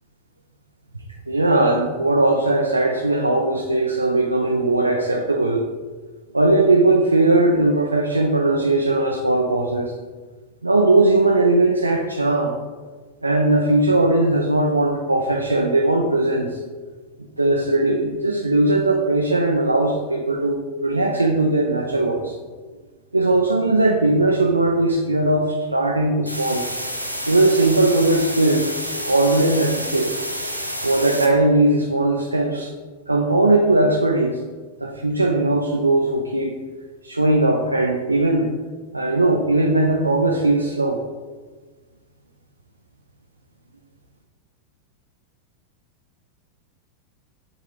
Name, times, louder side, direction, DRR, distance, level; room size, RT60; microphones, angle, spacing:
voice 1, 1.3-5.7 6.3-9.9 10.6-12.5 13.2-16.6 17.4-22.3 23.1-26.7 27.3-28.6 29.0-30.1 30.8-32.7 33.1-34.4 34.8-36.5 37.0-38.5 38.9-41.0, right 2 dB, 85° right, 0 dB, 0.5 m, -19 dB
sound 1, 26.3-31.3, equal, 90° left, 0.7 m, -29 dB
9.4 x 3.6 x 3.2 m, 1.4 s
figure-of-eight pair, 90°, 0 cm